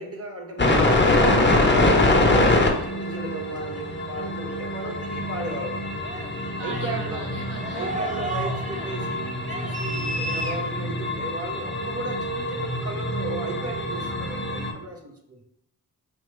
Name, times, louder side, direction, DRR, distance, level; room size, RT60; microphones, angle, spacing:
voice 1, 0.0-1.7 2.1-5.8 6.6-7.3 7.7-15.4, right 1 dB, 35° right, 1 dB, 1.0 m, -35 dB
sound 1, 0.6-14.7, left 2 dB, 25° left, 1.0 m, -24 dB
sound 2, 0.9-10.8, right 2 dB, 20° right, 0.6 m, -37 dB
voice 2, 6.6-8.0, right 1 dB, 85° right, -4 dB, 1.6 m, -37 dB
4.8 x 2.9 x 3.2 m, 0.73 s
cardioid pair, 60°, 40 cm